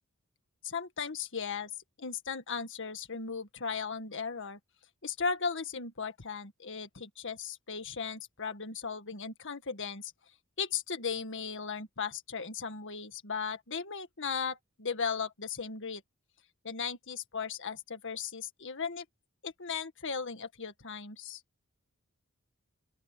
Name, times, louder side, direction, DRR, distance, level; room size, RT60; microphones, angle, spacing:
voice 1, 0.6-1.7 2.0-4.6 5.0-10.1 10.6-16.0 16.6-19.1 19.4-21.4, left 5 dB, 60° left, 1.8 m, -37 dB
open air
head